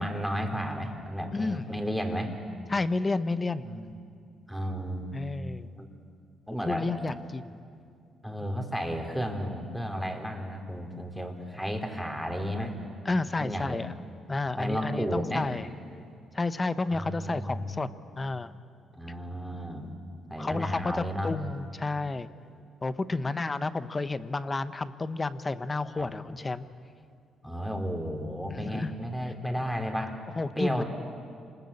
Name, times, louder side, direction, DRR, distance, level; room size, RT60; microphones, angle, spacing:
voice 1, 0.0-2.3 3.6-3.9 4.5-5.1 5.8-5.9 6.5-6.8 8.2-12.7 13.4-13.8 14.6-15.5 16.9-17.8 18.9-19.9 20.3-21.3 23.1-23.3 26.0-26.1 27.4-30.2 30.6-30.8, equal, ahead, 4 dB, 3.3 m, -33 dB
voice 2, 1.3-1.6 2.7-3.7 5.1-5.7 6.7-7.6 13.0-13.9 14.3-15.7 16.3-17.9 18.2-18.5 20.4-22.3 22.8-26.7 28.5-28.9 30.4-30.8, left 3 dB, 25° left, 13 dB, 0.9 m, -31 dB
27.5 x 20.5 x 8.6 m, 2.3 s
cardioid pair, 90°, 0 cm